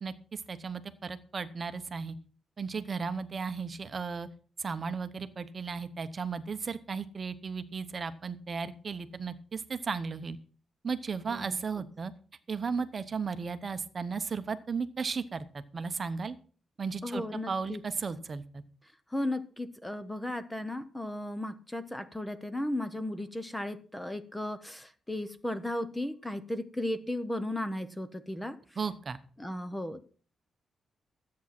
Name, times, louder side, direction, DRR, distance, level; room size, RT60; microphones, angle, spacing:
voice 1, 0.0-2.1 2.6-4.3 4.6-10.4 10.8-12.1 12.5-16.4 16.8-18.6 28.8-29.2, right 5 dB, 35° right, 0.9 m, -35 dB
voice 2, 17.0-17.8 19.1-28.6 29.4-30.1, left 1 dB, 5° left, 0.8 m, -35 dB
13.5 x 8.5 x 5.9 m
wide cardioid pair, 155°, 0 cm